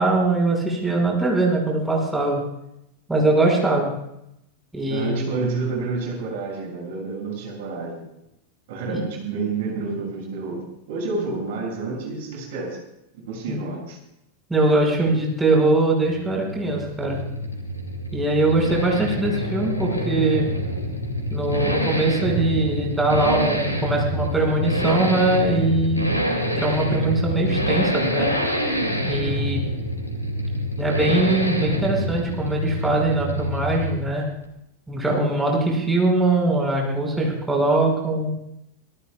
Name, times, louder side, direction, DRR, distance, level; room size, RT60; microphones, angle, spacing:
voice 1, 0.0-2.4 3.1-3.9 4.7-5.3 8.9-9.0 13.5-13.6 14.5-17.2 18.1-20.5 21.3-26.1 26.6-28.3 29.0-29.6 30.8-34.3 34.9-38.3, right 2 dB, 5° right, -2 dB, 5.5 m, -22 dB
voice 2, 4.9-8.0 8.7-12.8 13.3-14.0, right 3 dB, 55° right, -1 dB, 6.9 m, -29 dB
Accelerating revving vroom, 16.0-34.2 34.4-34.5, equal, 85° left, 2.5 m, -26 dB
26.0 x 18.5 x 2.4 m, 0.83 s
figure-of-eight pair, 90°, 0 cm